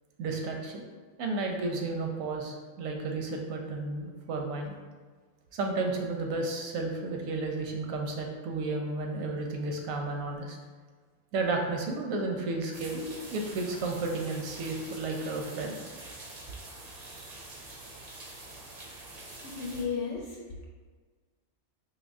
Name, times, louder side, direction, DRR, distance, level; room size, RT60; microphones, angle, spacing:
voice 1, 0.2-0.8 1.2-4.7 5.5-10.6 11.3-15.8 17.0-17.3, right 3 dB, 90° right, 2 dB, 1.0 m, -33 dB
sound 1, 12.7-19.8, right 2 dB, 50° right, 0.5 m, -46 dB
voice 2, 19.4-20.6, left 5 dB, 70° left, -3 dB, 0.8 m, -34 dB
4.0 x 2.8 x 2.5 m, 1.5 s
omnidirectional pair, 1.4 m